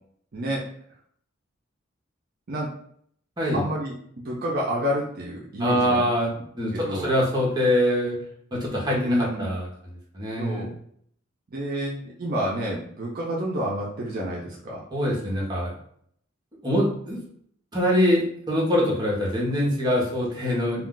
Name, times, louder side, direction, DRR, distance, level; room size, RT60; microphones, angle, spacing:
voice 1, 0.3-0.6 2.5-2.7 3.5-3.9 4.2-6.0 6.7-7.1 8.9-9.5 10.4-10.7 11.5-14.8, equal, 50° right, -3 dB, 0.5 m, -29 dB
voice 2, 5.6-6.3 6.6-8.2 8.5-10.7 14.9-15.7 16.6-17.2 17.7-20.9, equal, 20° right, -4 dB, 0.9 m, -24 dB
2.3 x 2.3 x 3.7 m, 0.65 s
head